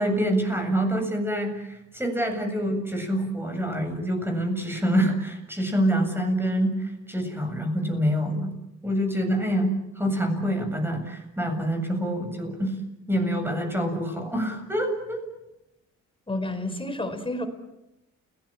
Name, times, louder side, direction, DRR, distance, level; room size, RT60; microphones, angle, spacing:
voice 1, 0.0-8.5 8.8-12.8 13.1-15.2, equal, 5° right, 4 dB, 7.9 m, -26 dB
voice 2, 16.3-17.5, left 1 dB, 15° left, 8 dB, 4.9 m, -30 dB
30.0 x 19.0 x 9.0 m, 0.92 s
cardioid pair, 90°, 30 cm